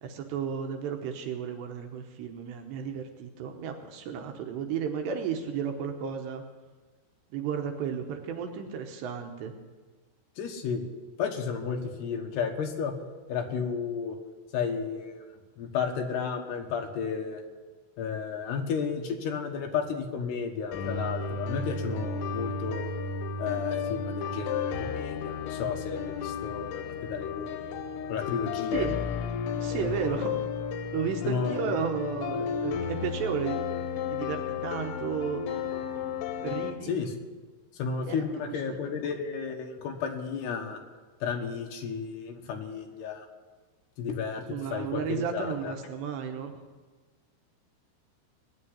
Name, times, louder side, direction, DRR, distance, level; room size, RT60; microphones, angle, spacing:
voice 1, 0.0-6.4 7.3-9.5 28.7-29.0 29.6-30.4 30.9-33.6 34.1-35.4 36.4-36.9 38.1-38.2 38.9-39.0 44.5-46.5, right 7 dB, 75° right, 5 dB, 2.9 m, -33 dB
voice 2, 10.4-10.8 11.2-12.9 13.3-14.2 14.5-15.3 15.6-17.4 18.0-22.9 23.4-27.7 28.1-29.0 29.8-30.2 31.2-31.7 36.8-37.2 37.7-40.8 41.2-43.3 44.0-45.7, left 6 dB, 65° left, 3 dB, 2.9 m, -33 dB
sound 1, 20.7-36.7, left 6 dB, 85° left, 3.8 m, -33 dB
19.5 x 7.5 x 9.9 m, 1.4 s
omnidirectional pair, 5.7 m